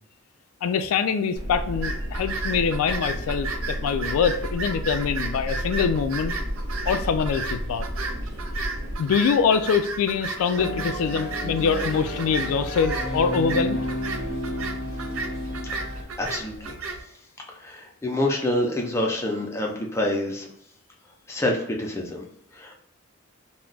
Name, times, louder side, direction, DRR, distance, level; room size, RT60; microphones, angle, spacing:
voice 1, 0.6-6.3 6.9-7.9 9.0-13.8, left 6 dB, 80° left, 11 dB, 0.3 m, -24 dB
sound 1, 1.3-8.9, equal, 55° right, 1.0 m, -32 dB
sound 2, 1.8-17.0, right 3 dB, 75° right, 0.4 m, -34 dB
sound 3, 10.6-16.0, equal, 15° right, 0.8 m, -31 dB
voice 2, 16.2-16.8 17.6-20.5 21.3-22.2 22.5-22.7, left 1 dB, 15° left, 0 dB, 0.4 m, -27 dB
2.3 x 2.1 x 3.8 m, 0.72 s
head